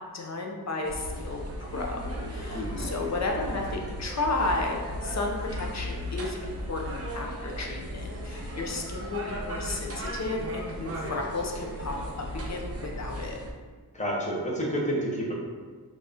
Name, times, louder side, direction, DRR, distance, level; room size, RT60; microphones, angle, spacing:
voice 1, 0.1-2.0 2.3-12.0 12.3-13.4, left 2 dB, 45° left, 0 dB, 0.6 m, -33 dB
sound 1, 0.8-13.5, equal, 35° right, 0.6 m, -36 dB
voice 2, 2.5-2.9 13.9-15.3, equal, 20° left, -4 dB, 0.9 m, -29 dB
4.0 x 2.5 x 3.4 m, 1.5 s
wide cardioid pair, 125°, 40 cm